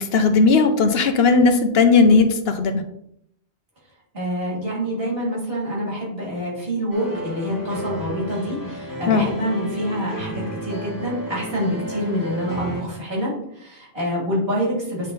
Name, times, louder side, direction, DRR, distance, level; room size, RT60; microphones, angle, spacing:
voice 1, 0.0-2.8 9.1-9.3, left 4 dB, 70° left, 7 dB, 0.9 m, -16 dB
voice 2, 4.1-15.1, equal, 60° right, -5 dB, 3.1 m, -26 dB
sound 1, 6.9-12.8, right 1 dB, 20° left, 1.3 m, -32 dB
8.5 x 3.7 x 4.0 m, 0.74 s
omnidirectional pair, 1.1 m